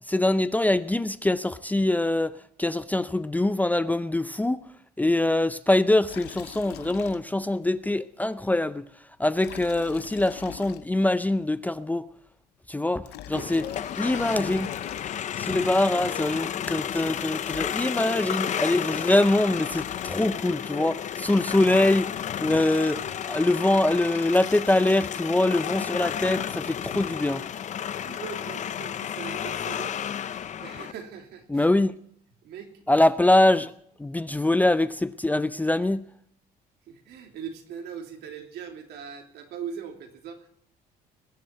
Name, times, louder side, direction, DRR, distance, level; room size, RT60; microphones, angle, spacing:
voice 1, 0.1-4.7 5.0-8.9 9.2-12.1 12.7-13.6 13.9-14.7 15.0-27.5 31.5-31.9 32.9-33.7 34.0-36.1, left 1 dB, 10° left, 0.5 m, -24 dB
Liquid, 6.0-7.6 7.8-7.9 9.3-11.2 12.8-15.5 17.1-17.2 17.4-18.3 19.4-20.5, left 14 dB, 80° left, 0.7 m, -44 dB
sound 1, 13.3-30.9, left 9 dB, 45° left, 0.7 m, -32 dB
voice 2, 27.8-30.0 30.3-31.7 32.4-32.8 36.9-40.5, right 7 dB, 75° right, 3.0 m, -40 dB
21.0 x 7.7 x 7.6 m
cardioid pair, 110°, 17 cm